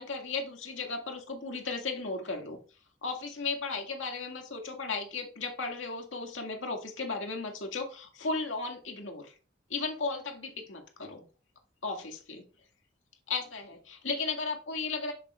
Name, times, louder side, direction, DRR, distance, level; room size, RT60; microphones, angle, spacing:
voice 1, 0.0-2.6 3.0-9.3 9.7-11.2 11.8-12.4 13.3-15.1, left 4 dB, 80° left, 2.0 m, -35 dB
11.0 x 7.4 x 2.4 m
head